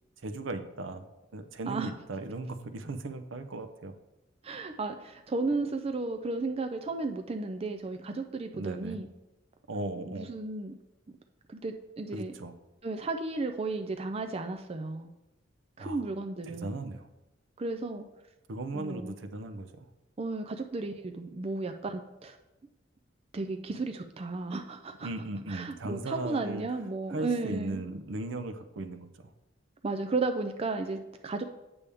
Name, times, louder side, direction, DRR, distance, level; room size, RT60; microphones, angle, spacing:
voice 1, 0.2-3.9 8.5-9.0 9.7-10.3 12.1-12.5 15.8-16.0 16.5-17.1 18.5-19.9 25.0-26.6 27.1-29.3, right 2 dB, 70° right, 9 dB, 0.6 m, -37 dB
voice 2, 4.4-9.1 10.0-10.7 11.5-12.3 12.8-15.1 15.8-16.8 17.6-18.1 18.7-19.2 20.2-22.4 23.3-25.1 25.5-27.8 29.8-31.4, right 3 dB, 30° right, 6 dB, 0.4 m, -34 dB
8.4 x 6.9 x 3.5 m, 1.0 s
head